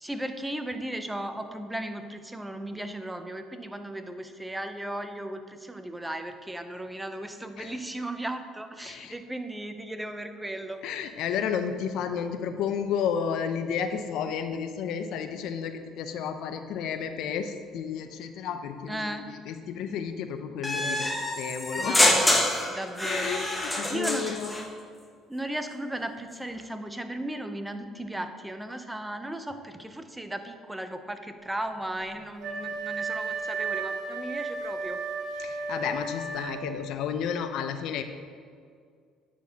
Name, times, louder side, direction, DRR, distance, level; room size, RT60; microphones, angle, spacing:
voice 1, 0.0-10.8 18.9-19.3 21.8-24.3 25.3-35.0, right 1 dB, 10° right, 8 dB, 0.6 m, -36 dB
voice 2, 8.8-9.2 10.8-22.0 23.0-24.5 35.4-38.0, left 7 dB, 70° left, 8 dB, 0.5 m, -32 dB
sound 1, 20.6-24.7, left 1 dB, 10° left, 1.1 m, -26 dB
Wind instrument woodwind instrument, 32.4-36.8, right 4 dB, 65° right, 1.2 m, -33 dB
9.2 x 6.0 x 2.8 m, 2.1 s
supercardioid pair, 75°, 0 cm